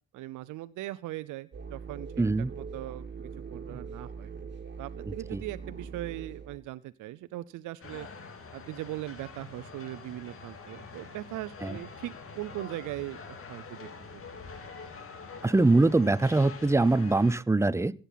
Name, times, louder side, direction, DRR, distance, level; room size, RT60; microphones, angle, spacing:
voice 1, 0.1-2.2 2.6-3.1 3.5-4.3 4.8-8.1 8.5-14.2, right 16 dB, 85° right, 13 dB, 0.7 m, -39 dB
sound 1, 1.5-6.6, right 5 dB, 35° right, 2.6 m, -42 dB
voice 2, 2.2-2.5 5.1-5.4 11.6-11.8 15.4-17.9, right 2 dB, 10° right, 18 dB, 0.6 m, -23 dB
sound 2, 7.8-17.3, left 4 dB, 45° left, 3.0 m, -45 dB
15.0 x 9.0 x 5.7 m, 0.38 s
cardioid pair, 90°, 30 cm